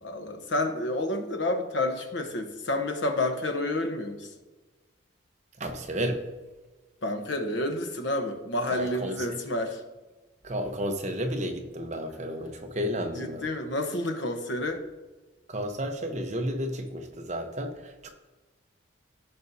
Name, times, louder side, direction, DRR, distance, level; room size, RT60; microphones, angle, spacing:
voice 1, 0.0-4.3 7.0-9.8 13.1-14.8, left 1 dB, 70° left, 5 dB, 1.0 m, -29 dB
voice 2, 5.6-6.2 8.7-9.2 10.4-13.4 15.5-18.1, equal, 35° right, 4 dB, 0.9 m, -32 dB
15.5 x 5.3 x 2.7 m, 1.2 s
head